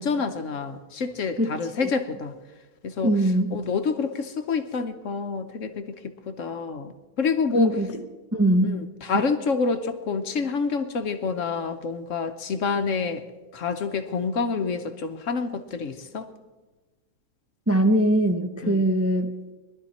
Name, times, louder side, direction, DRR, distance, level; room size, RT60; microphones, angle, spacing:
voice 1, 0.0-2.3 2.8-3.1 3.5-6.0 6.3-7.7 8.6-13.2 13.5-16.3 18.6-18.8, left 4 dB, 60° left, 8 dB, 1.1 m, -28 dB
voice 2, 1.4-1.9 3.0-3.5 7.5-8.0 8.3-8.8 17.7-19.3, right 1 dB, 15° right, 4 dB, 0.4 m, -22 dB
21.5 x 12.0 x 4.3 m, 1.2 s
omnidirectional pair, 1.7 m